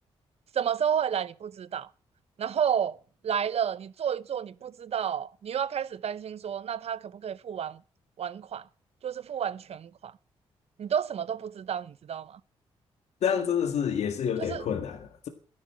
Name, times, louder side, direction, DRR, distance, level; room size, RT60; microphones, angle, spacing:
voice 1, 0.5-1.9 2.4-3.0 3.2-7.8 8.2-8.6 9.0-10.1 10.8-12.4 14.4-14.6, right 8 dB, 65° right, 0.8 m, -31 dB
voice 2, 13.2-15.3, left 8 dB, 75° left, 1.7 m, -28 dB
13.0 x 11.0 x 7.6 m
supercardioid pair, 55°, 11 cm